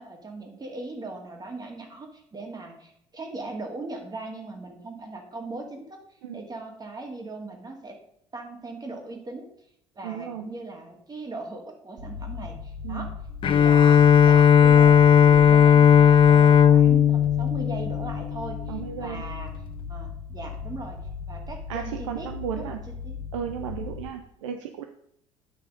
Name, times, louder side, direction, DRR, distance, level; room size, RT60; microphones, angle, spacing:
voice 1, 0.0-6.0 6.3-8.0 8.3-9.5 10.0-13.1 13.4-19.5 19.9-21.0 21.3-22.3 22.6-22.8 23.0-23.2, right 2 dB, 25° right, 2 dB, 2.0 m, -39 dB
voice 2, 10.0-10.5 12.8-13.1 18.7-19.2 21.7-22.8 23.3-24.8, right 9 dB, 70° right, 6 dB, 0.6 m, -34 dB
sound 1, 12.0-24.1, left 5 dB, 40° right, 1.7 m, -37 dB
Bowed string instrument, 13.4-18.7, left 8 dB, 30° left, 0.4 m, -16 dB
9.0 x 5.6 x 5.1 m, 0.73 s
figure-of-eight pair, 55°, 16 cm